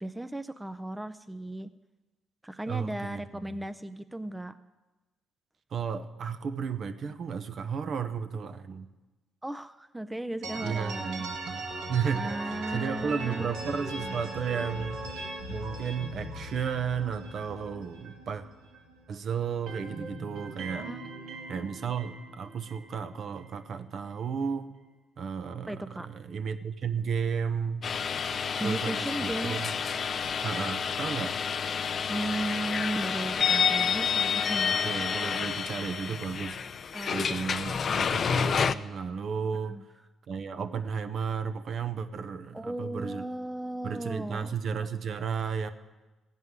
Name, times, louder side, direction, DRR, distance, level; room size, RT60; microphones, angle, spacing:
voice 1, 0.0-1.7 2.4-4.6 9.4-11.2 12.1-13.5 20.8-21.4 25.7-26.1 28.6-29.6 32.1-34.8 36.9-38.0 39.7-39.9 42.5-44.5, right 1 dB, 10° right, 10 dB, 0.5 m, -36 dB
voice 2, 2.7-3.6 5.7-8.9 10.6-15.0 15.5-18.4 19.1-20.9 21.5-24.7 25.2-27.9 28.6-29.7 30.4-31.4 34.7-36.6 37.1-39.8 40.3-43.2 43.8-45.7, right 6 dB, 60° right, 10 dB, 0.9 m, -33 dB
sound 1, 10.4-19.2 19.4-23.6, right 2 dB, 90° right, 1.9 m, -39 dB
sound 2, 27.8-38.7, left 6 dB, 50° left, 0.5 m, -29 dB
15.5 x 5.5 x 9.6 m, 1.1 s
cardioid pair, 90°, 0 cm